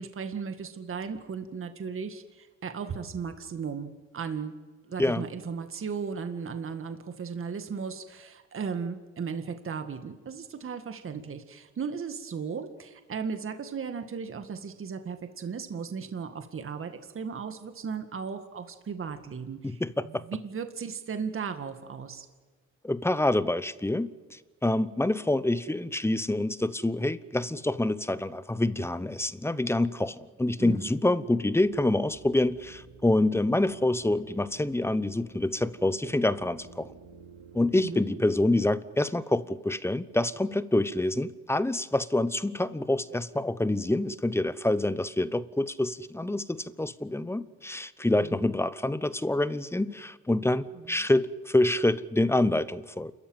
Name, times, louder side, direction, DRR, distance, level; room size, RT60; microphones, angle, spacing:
voice 1, 0.0-4.5 4.9-22.3 30.6-30.9 37.7-38.0 48.2-48.4, right 6 dB, 45° right, 2.0 m, -36 dB
voice 2, 19.6-20.2 22.8-36.9 37.5-53.1, left 1 dB, 10° left, 1.0 m, -27 dB
sound 1, 31.0-37.9, right 3 dB, 85° right, 5.7 m, -52 dB
29.0 x 14.0 x 9.1 m
cardioid pair, 90°, 30 cm